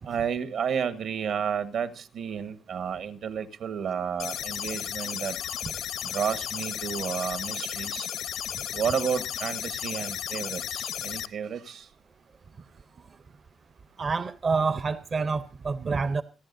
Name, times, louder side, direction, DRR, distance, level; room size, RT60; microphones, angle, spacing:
voice 1, 0.0-5.4 6.0-8.1 8.7-11.9, right 7 dB, 65° right, 11 dB, 1.3 m, -31 dB
sound 1, 4.2-11.3, left 10 dB, 75° left, 0.7 m, -34 dB
voice 2, 14.0-16.2, right 4 dB, 35° right, 13 dB, 0.6 m, -27 dB
29.5 x 11.0 x 2.6 m, 0.33 s
cardioid pair, 150°, 0 cm